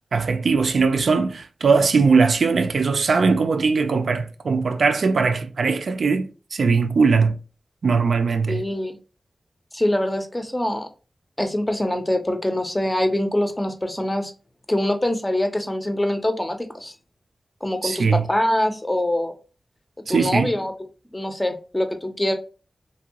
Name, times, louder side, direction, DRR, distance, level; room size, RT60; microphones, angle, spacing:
voice 1, 0.1-7.3 7.8-8.6 17.8-18.2 20.1-20.5, right 4 dB, 80° right, 0.3 m, -20 dB
voice 2, 8.5-9.0 9.7-10.9 11.4-14.3 14.7-16.9 17.6-19.3 20.1-20.7 21.1-22.3, left 1 dB, 15° left, 0.5 m, -24 dB
2.9 x 2.6 x 2.8 m
wide cardioid pair, 90°, 0 cm